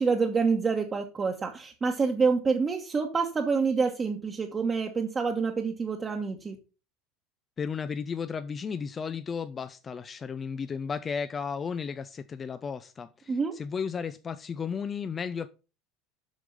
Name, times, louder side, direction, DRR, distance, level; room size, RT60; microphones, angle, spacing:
voice 1, 0.0-6.6 13.3-13.6, right 5 dB, 25° right, 1.4 m, -27 dB
voice 2, 7.6-15.5, left 6 dB, 30° left, 0.6 m, -34 dB
8.2 x 6.1 x 5.4 m
figure-of-eight pair, 75°, 0 cm